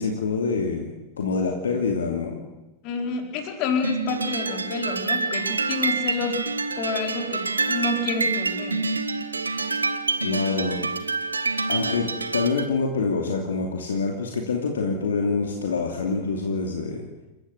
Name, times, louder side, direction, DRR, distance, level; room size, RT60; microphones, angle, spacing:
voice 1, 0.0-2.5 10.2-10.8 11.7-17.1, left 4 dB, 65° left, 2 dB, 2.7 m, -26 dB
voice 2, 2.8-6.4 6.8-8.8, left 4 dB, 40° left, 3 dB, 4.6 m, -28 dB
sound 1, 3.8-12.7, right 3 dB, 80° right, 1.2 m, -27 dB
29.0 x 14.5 x 8.1 m, 1.0 s
figure-of-eight pair, 90°, 0 cm